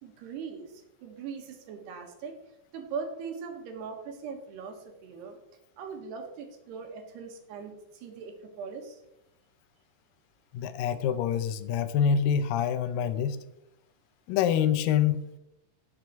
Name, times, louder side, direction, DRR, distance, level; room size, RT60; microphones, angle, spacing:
voice 1, 0.0-2.4 2.7-5.4 5.8-9.0, right 5 dB, 80° right, 4 dB, 3.5 m, -40 dB
voice 2, 10.5-13.4 14.3-15.4, left 8 dB, 80° left, 10 dB, 2.0 m, -26 dB
16.5 x 6.2 x 4.6 m, 0.86 s
omnidirectional pair, 4.7 m